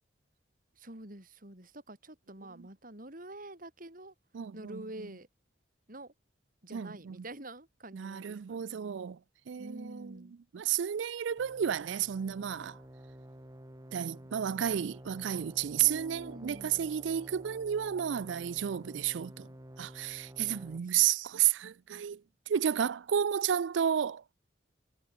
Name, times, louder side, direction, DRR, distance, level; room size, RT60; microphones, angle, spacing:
voice 1, 0.8-4.1 4.5-5.3 5.9-6.1 6.6-8.8 9.6-10.4 15.8-16.9 20.4-20.9, right 1 dB, 50° right, 6.8 m, -47 dB
voice 2, 4.3-4.8 6.7-7.2 7.9-9.2 9.5-10.2 10.5-12.8 13.9-19.5 19.8-22.2 22.5-24.2, right 9 dB, 80° right, 0.4 m, -31 dB
sound 1, 11.4-20.8, right 1 dB, 20° right, 2.3 m, -51 dB
head